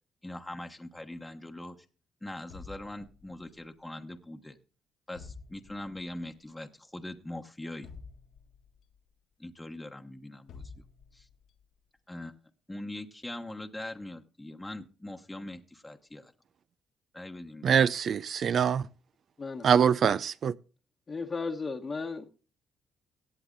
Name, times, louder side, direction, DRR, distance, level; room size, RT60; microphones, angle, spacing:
voice 1, 0.2-1.8 2.2-4.6 5.1-7.9 9.4-10.6 11.1-11.3 12.1-12.4 12.7-16.3 17.1-17.7, left 1 dB, 10° left, 1.1 m, -42 dB
sound 1, 2.5-3.6 5.1-6.1 7.8-8.9 10.5-11.5, left 4 dB, 80° left, 1.6 m, -49 dB
voice 2, 17.6-18.8 19.6-20.5, right 7 dB, 55° right, 0.4 m, -24 dB
voice 3, 21.1-22.2, left 4 dB, 35° left, 1.1 m, -34 dB
17.0 x 7.7 x 3.9 m
cardioid pair, 90°, 0 cm